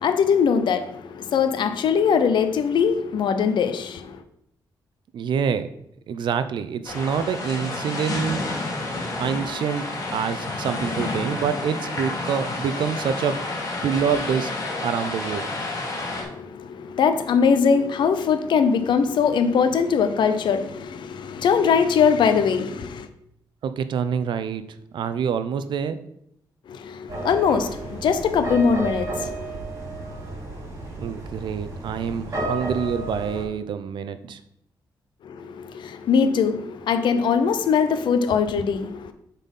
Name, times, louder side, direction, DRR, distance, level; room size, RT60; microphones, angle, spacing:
voice 1, 0.0-4.2 16.1-23.1 26.7-29.6 35.2-39.1, left 6 dB, 70° left, 0.7 m, -21 dB
voice 2, 5.1-5.7 6.1-8.4 9.2-13.4 13.8-14.5 14.8-15.5 23.6-24.6 24.9-26.0 31.0-34.4, right 7 dB, 70° right, 0.6 m, -26 dB
sound 1, 6.8-16.2, left 2 dB, 40° left, 1.8 m, -30 dB
sound 2, 27.1-33.4, right 2 dB, 40° right, 3.4 m, -32 dB
7.2 x 4.2 x 5.4 m
wide cardioid pair, 155°, 8 cm